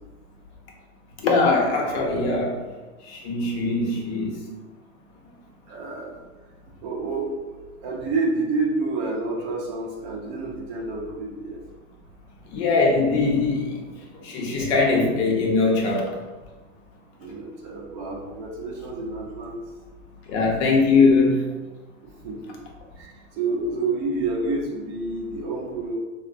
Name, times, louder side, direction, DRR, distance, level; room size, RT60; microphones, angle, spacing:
voice 1, 1.2-2.6 3.1-4.4 12.5-13.8 14.2-16.1 20.3-21.4, left 3 dB, 60° left, -1 dB, 0.8 m, -21 dB
voice 2, 5.7-6.1 6.8-11.6 17.2-19.6 22.2-22.6 23.0-25.9, right 3 dB, 40° right, -2 dB, 0.5 m, -29 dB
3.2 x 2.1 x 2.5 m, 1.2 s
hypercardioid pair, 130°, 39 cm